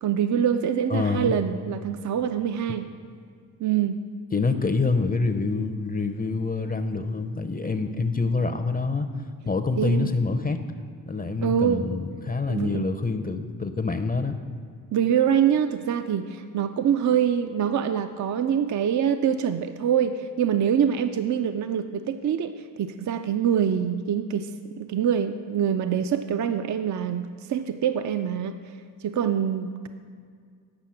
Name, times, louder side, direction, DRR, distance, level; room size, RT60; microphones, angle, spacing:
voice 1, 0.0-2.9 3.6-4.0 9.8-10.1 11.4-11.8 12.5-12.8 14.9-28.7 29.0-29.9, right 8 dB, 45° right, 8 dB, 0.5 m, -25 dB
voice 2, 0.9-1.3 4.3-9.1 9.4-10.6 11.1-14.3, left 3 dB, 20° left, 8 dB, 0.6 m, -26 dB
8.9 x 5.8 x 5.7 m, 2.1 s
supercardioid pair, 50°, 40 cm